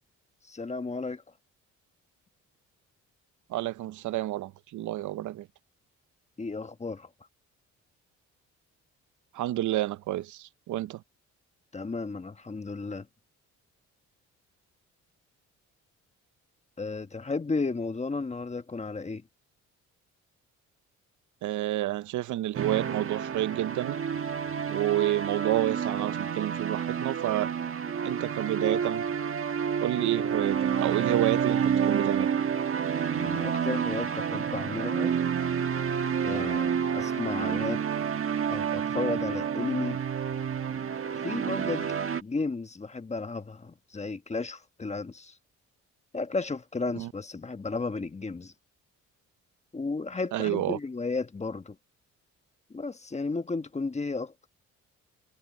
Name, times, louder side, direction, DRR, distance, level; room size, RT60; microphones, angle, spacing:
voice 1, 0.4-1.2 6.4-7.1 11.7-13.1 16.8-19.2 33.1-35.2 36.2-37.8 38.5-40.0 41.2-45.4 46.1-48.5 49.7-51.8 52.7-54.5, left 3 dB, 20° left, 1.4 m, -33 dB
voice 2, 3.5-5.5 9.3-11.0 21.4-24.0 24.6-27.5 28.0-29.0 29.8-32.3 46.9-47.1 50.3-50.8, right 14 dB, 75° right, 0.7 m, -29 dB
sound 1, 22.5-42.2, right 7 dB, 45° right, 1.6 m, -29 dB
cardioid pair, 90°, 30 cm